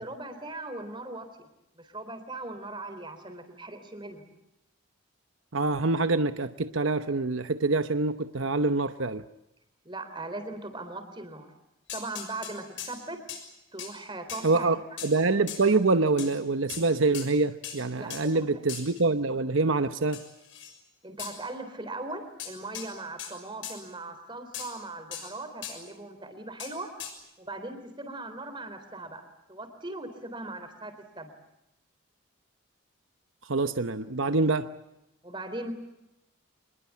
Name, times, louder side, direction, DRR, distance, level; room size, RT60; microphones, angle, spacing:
voice 1, 0.0-1.5 1.7-4.2 9.8-11.5 11.9-13.2 13.7-14.7 18.0-18.5 21.0-26.9 27.4-31.3 35.2-35.7, right 2 dB, 25° right, 8 dB, 3.7 m, -39 dB
voice 2, 5.5-9.2 14.4-20.2 33.5-34.7, right 3 dB, 75° right, 10 dB, 0.9 m, -25 dB
sound 1, 11.9-13.0 13.3-13.5 13.8-13.9 14.3-14.5 15.0-15.1 15.5-15.6 16.2-16.3 16.7-16.9 17.1-17.3 17.6-17.8 18.1-18.2 18.7-19.0 20.1-20.8 21.2-21.4 22.4-22.9 23.2-23.3 23.6-23.8 24.5-24.7 25.1-25.3 25.6-25.8 26.6-26.7 27.0-27.1, left 8 dB, 65° left, 6.5 m, -39 dB
26.0 x 21.0 x 8.5 m, 0.90 s
head